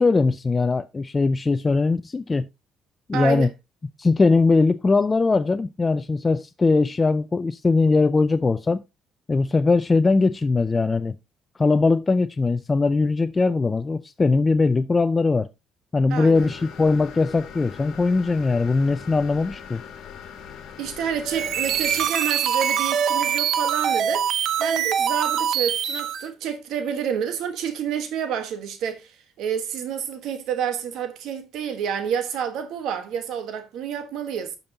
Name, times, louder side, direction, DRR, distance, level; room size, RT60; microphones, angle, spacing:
voice 1, 0.0-2.5 3.1-3.5 4.0-8.8 9.3-11.2 11.6-15.5 15.9-19.8, left 3 dB, 20° left, 0.3 m, -20 dB
voice 2, 3.1-3.5 16.1-16.5 20.8-24.3 24.6-34.6, right 8 dB, 70° right, 1.2 m, -29 dB
sound 1, 16.3-22.1, left 7 dB, 65° left, 1.5 m, -41 dB
sound 2, 21.2-26.3, right 8 dB, 55° right, 0.7 m, -23 dB
12.5 x 5.2 x 2.7 m
cardioid pair, 140°, 0 cm